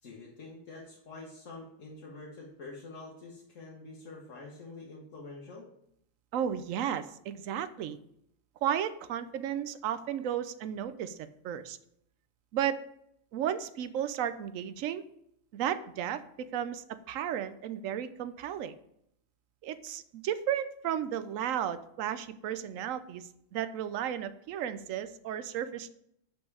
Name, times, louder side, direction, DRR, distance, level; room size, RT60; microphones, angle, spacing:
voice 1, 0.0-5.7, left 3 dB, 75° left, -4 dB, 1.5 m, -46 dB
voice 2, 6.3-8.0 8.6-11.8 12.5-12.8 13.3-15.0 15.5-18.7 19.6-25.9, right 10 dB, 85° right, 13 dB, 1.0 m, -34 dB
6.0 x 5.4 x 4.7 m, 0.74 s
omnidirectional pair, 1.3 m